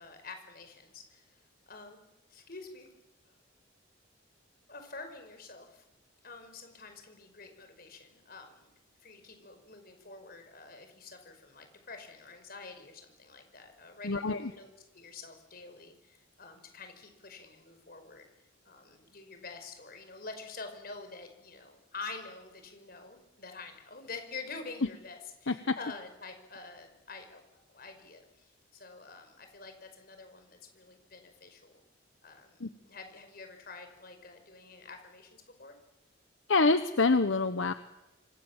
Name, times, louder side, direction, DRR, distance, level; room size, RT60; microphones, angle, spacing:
voice 1, 0.0-2.9 4.7-5.8 6.2-8.7 9.0-18.3 18.7-27.4 27.7-31.8 32.2-35.7, left 4 dB, 50° left, 7 dB, 5.4 m, -47 dB
voice 2, 14.0-14.5 25.5-25.7 32.6-32.7 36.5-37.7, left 3 dB, 75° left, 10 dB, 1.1 m, -26 dB
28.0 x 24.5 x 7.5 m, 0.99 s
head